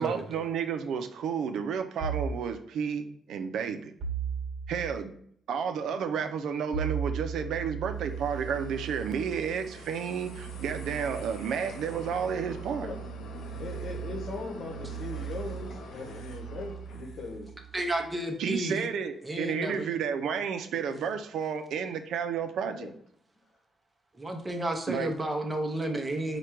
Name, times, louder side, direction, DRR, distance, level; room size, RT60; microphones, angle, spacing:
voice 1, 0.0-3.9 4.7-5.1 5.5-12.9 18.4-22.9 24.9-25.1, right 7 dB, 75° right, 6 dB, 0.4 m, -31 dB
sound 1, 2.0-2.4 4.0-4.9 6.7-18.1, right 7 dB, 60° right, 1.1 m, -38 dB
sound 2, 7.7-17.4, left 3 dB, 80° left, 0.7 m, -47 dB
voice 2, 10.2-10.7 12.8-13.0 13.6-17.5 22.7-22.9, left 3 dB, 55° left, 1 dB, 1.0 m, -40 dB
voice 3, 17.7-18.8 19.2-19.9 24.2-26.4, right 1 dB, 15° right, 3 dB, 0.6 m, -31 dB
4.8 x 2.2 x 4.4 m, 0.64 s
cardioid pair, 135°, 0 cm